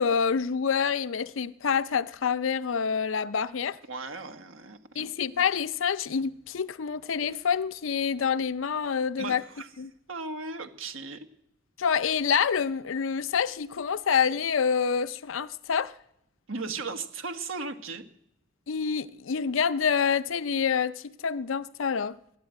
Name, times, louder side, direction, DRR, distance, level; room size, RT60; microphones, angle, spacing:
voice 1, 0.0-3.8 5.0-9.4 9.8-9.9 11.8-15.9 18.7-22.2, left 6 dB, 80° left, 0.5 m, -27 dB
voice 2, 3.9-5.1 9.2-9.7 10.1-11.3 16.5-18.0, right 3 dB, 85° right, 1.3 m, -36 dB
13.5 x 8.9 x 9.4 m
head